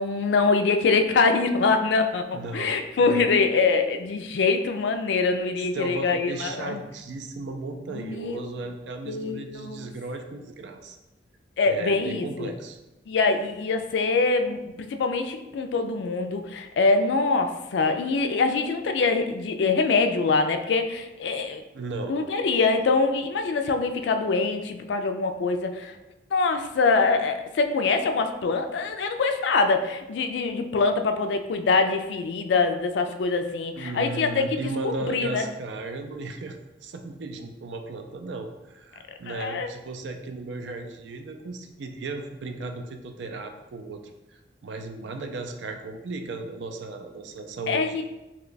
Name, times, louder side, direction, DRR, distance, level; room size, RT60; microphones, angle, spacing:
voice 1, 0.0-6.8 7.9-8.6 9.1-9.9 11.6-12.5 13.1-21.6 22.1-25.9 26.3-34.6 35.1-35.5 39.3-39.7 47.7-48.0, left 4 dB, 75° left, 7 dB, 0.3 m, -24 dB
voice 2, 2.3-3.3 5.7-11.0 11.6-12.8 21.7-22.2 33.8-44.0 44.3-48.0, right 3 dB, 80° right, 5 dB, 0.4 m, -35 dB
3.0 x 2.2 x 3.9 m, 1.0 s
head